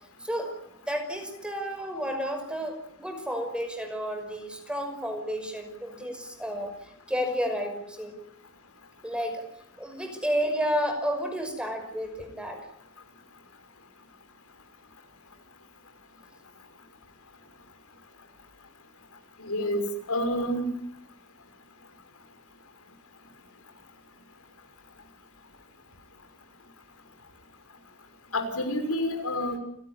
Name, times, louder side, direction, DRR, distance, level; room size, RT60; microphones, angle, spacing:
voice 1, 0.2-0.5 0.8-8.2 9.0-9.4 9.8-12.6, equal, 5° right, 6 dB, 5.6 m, -31 dB
voice 2, 19.4-19.8 20.1-20.7 28.3-29.6, left 1 dB, 85° left, 6 dB, 6.1 m, -28 dB
29.5 x 17.5 x 9.9 m, 0.70 s
head